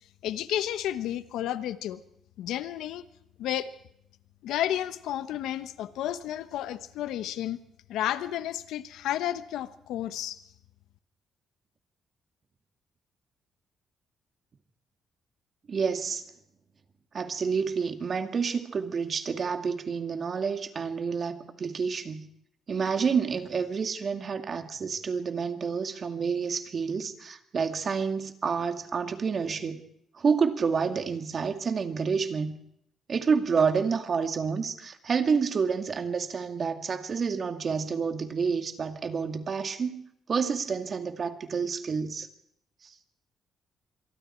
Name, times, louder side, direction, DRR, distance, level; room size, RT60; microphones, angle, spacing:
voice 1, 0.2-2.0 2.4-3.0 3.4-3.7 4.4-7.6 7.9-10.4, left 12 dB, 85° left, 12 dB, 1.1 m, -31 dB
voice 2, 15.7-16.2 17.1-22.3 22.7-29.8 30.1-32.6 33.1-40.0 40.3-42.3 42.8-42.9, right 5 dB, 45° right, 7 dB, 2.3 m, -29 dB
26.5 x 23.0 x 4.6 m, 0.74 s
cardioid pair, 90°, 0 cm